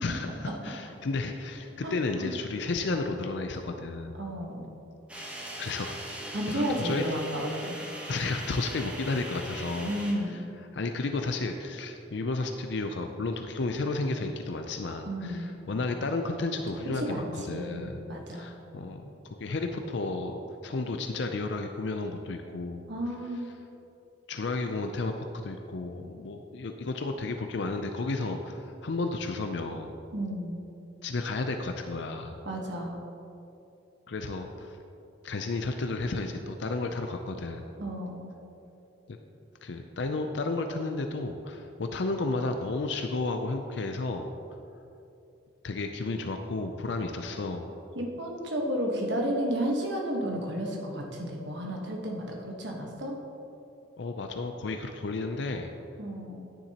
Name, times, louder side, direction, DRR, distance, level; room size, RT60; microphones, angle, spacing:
voice 1, 0.0-4.2 5.2-7.0 8.1-9.9 10.3-10.4 10.7-18.0 18.3-20.4 20.6-22.9 24.3-25.1 25.4-29.9 31.0-32.4 34.1-34.8 35.2-37.6 39.1-39.2 39.6-44.3 45.6-47.7 54.0-55.7, left 3 dB, 60° left, 5 dB, 0.5 m, -32 dB
voice 2, 4.2-4.7 6.3-7.8 9.8-10.4 15.1-15.5 16.9-18.5 22.9-23.5 30.1-30.6 32.4-33.0 37.8-38.3 47.9-53.2 56.0-56.5, equal, 60° right, 0 dB, 1.3 m, -32 dB
sound 1, 5.1-10.1, right 1 dB, 5° right, 1.1 m, -40 dB
10.0 x 9.5 x 2.9 m, 2.8 s
head